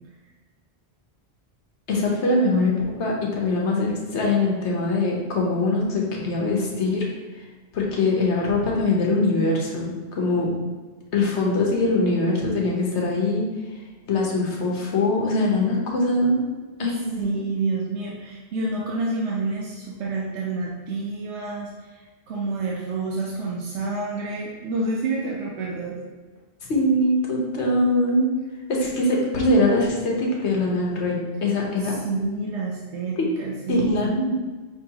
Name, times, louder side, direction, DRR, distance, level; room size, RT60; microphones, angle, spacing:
voice 1, 1.9-2.7 3.0-7.0 7.3-7.4 7.7-10.5 11.1-13.4 14.1-16.4 16.8-17.4 26.7-28.3 28.7-32.0 33.2-33.3 33.7-34.3, left 2 dB, 85° left, -2 dB, 1.2 m, -22 dB
voice 2, 17.2-26.0 31.8-34.2, right 3 dB, 85° right, -4 dB, 1.0 m, -29 dB
5.9 x 3.1 x 2.8 m, 1.3 s
omnidirectional pair, 1.1 m